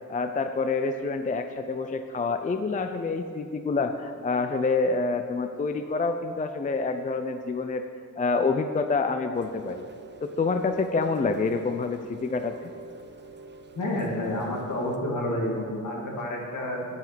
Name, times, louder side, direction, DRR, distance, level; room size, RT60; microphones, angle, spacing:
voice 1, 0.1-7.8 8.2-9.9 10.2-12.7, left 4 dB, 25° left, 7 dB, 0.4 m, -27 dB
Rain, 9.3-15.0, right 3 dB, 35° right, 0.6 m, -47 dB
voice 2, 13.7-16.9, left 1 dB, 65° left, -1 dB, 2.3 m, -29 dB
9.4 x 8.6 x 6.0 m, 2.2 s
wide cardioid pair, 145°, 32 cm